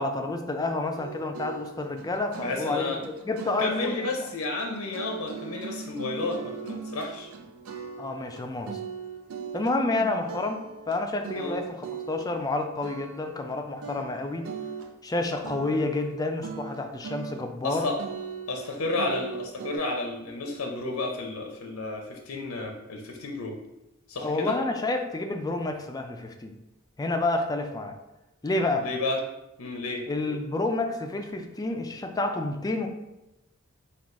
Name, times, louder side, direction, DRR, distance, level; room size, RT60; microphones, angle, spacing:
voice 1, 0.0-4.1 8.0-8.8 9.5-14.5 15.0-17.9 24.2-26.5 27.0-27.9 28.4-28.9 30.1-32.9, left 2 dB, 20° left, 5 dB, 0.4 m, -29 dB
sound 1, 1.0-12.6 12.8-13.6 13.8-16.1 16.4-17.7 18.0-19.8, right 6 dB, 85° right, 0.4 m, -40 dB
voice 2, 2.4-3.0 3.6-7.3 11.3-11.6 17.6-18.0 18.5-23.6 24.1-24.5 28.8-29.2 29.6-30.0, left 2 dB, 85° left, 2 dB, 0.6 m, -31 dB
3.8 x 2.4 x 4.6 m, 0.95 s
head